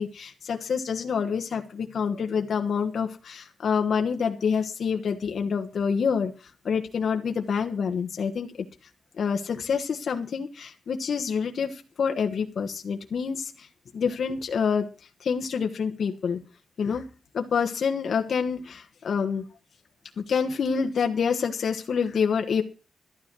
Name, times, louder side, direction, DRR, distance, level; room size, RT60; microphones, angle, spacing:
voice 1, 0.0-6.3 6.6-8.5 9.2-13.7 13.9-14.9 15.2-16.4 16.8-17.0 17.3-19.4 20.2-22.6, left 6 dB, 60° left, 4 dB, 1.4 m, -27 dB
13.5 x 10.0 x 6.2 m, 0.35 s
wide cardioid pair, 145°, 0 cm